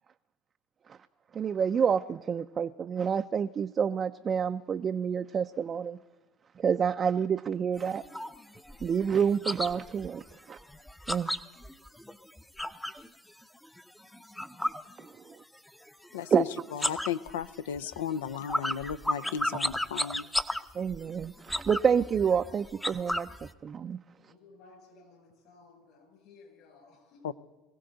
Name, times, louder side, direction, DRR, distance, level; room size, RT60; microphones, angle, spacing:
voice 1, 1.3-6.0 6.6-8.0 8.8-10.6 11.1-11.3 15.0-15.2 16.3-16.7 20.7-24.0, right 7 dB, 35° right, 0.4 m, -28 dB
sound 1, 7.8-13.1 13.4-15.6 15.8-16.4 16.7-23.5, left 1 dB, 5° left, 0.6 m, -34 dB
voice 2, 16.1-16.4 16.8-20.3 27.2-27.3, left 8 dB, 85° left, 0.5 m, -35 dB
voice 3, 24.2-27.2, left 3 dB, 60° left, 7.0 m, -56 dB
23.0 x 16.0 x 3.9 m
hypercardioid pair, 80°, 0 cm